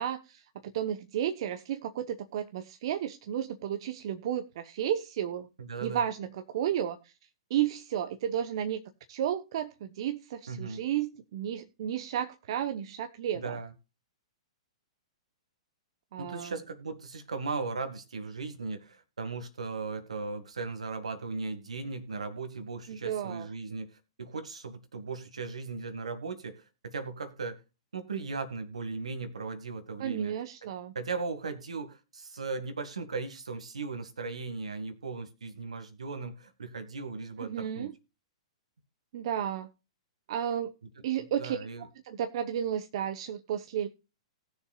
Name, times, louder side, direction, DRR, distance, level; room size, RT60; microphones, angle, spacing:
voice 1, 0.0-5.5 5.8-7.0 7.5-8.8 9.1-13.6 16.1-16.5 22.9-23.5 30.0-30.9 37.4-37.9 39.1-39.7 40.3-40.7 41.0-43.9, right 10 dB, 55° right, 8 dB, 0.9 m, -33 dB
voice 2, 5.6-6.0 10.5-10.8 13.3-13.7 16.2-23.9 24.2-27.6 27.9-30.3 31.0-37.9 41.2-41.8, right 4 dB, 80° right, 9 dB, 1.9 m, -37 dB
19.0 x 6.8 x 2.4 m, 0.29 s
hypercardioid pair, 115°, 3 cm